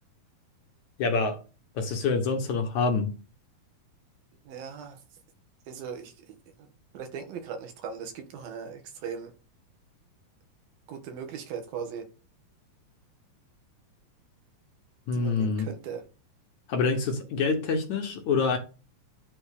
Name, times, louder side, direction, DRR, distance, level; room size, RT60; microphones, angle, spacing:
voice 1, 1.0-1.4 1.8-3.2 15.1-15.7 16.7-18.6, left 4 dB, 60° left, 2.4 m, -26 dB
voice 2, 4.5-5.0 5.7-6.7 6.9-9.3 10.9-12.1 15.1-16.1, right 7 dB, 75° right, 3.5 m, -39 dB
11.5 x 4.4 x 6.6 m
omnidirectional pair, 4.2 m